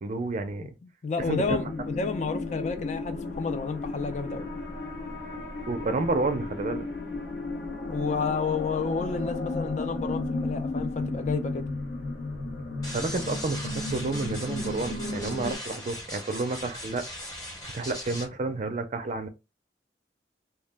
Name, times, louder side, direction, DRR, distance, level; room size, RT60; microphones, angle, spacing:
voice 1, 0.0-0.7 1.2-1.6 5.7-6.8 12.9-17.0 17.7-19.3, right 3 dB, 40° right, 0.4 m, -30 dB
voice 2, 0.8-4.5 7.9-11.7, left 5 dB, 40° left, 0.3 m, -31 dB
sound 1, 1.2-15.5, left 2 dB, 65° left, 0.8 m, -34 dB
sound 2, 12.8-18.3, left 1 dB, 20° left, 1.0 m, -39 dB
2.2 x 2.1 x 3.3 m
head